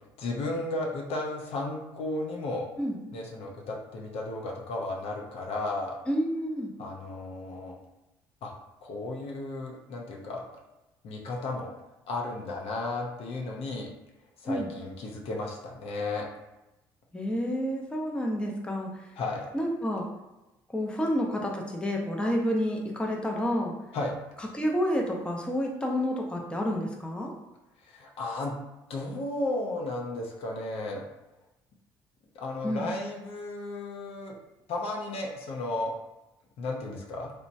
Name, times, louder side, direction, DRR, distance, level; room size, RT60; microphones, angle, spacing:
voice 1, 0.2-2.6 3.1-6.0 6.8-7.8 8.4-8.5 8.8-10.4 11.0-11.7 12.1-13.9 14.4-16.3 19.2-19.5 23.9-24.2 27.8-28.6 28.9-31.1 32.3-34.4 34.7-35.9 36.6-37.3, left 2 dB, 60° left, -1 dB, 0.6 m, -34 dB
voice 2, 6.1-6.7 14.5-14.7 17.1-19.1 19.5-20.1 20.7-23.7 24.4-27.3 32.6-32.9, equal, 10° left, 0 dB, 0.5 m, -29 dB
2.9 x 2.1 x 2.6 m, 0.97 s
hypercardioid pair, 55°, 11 cm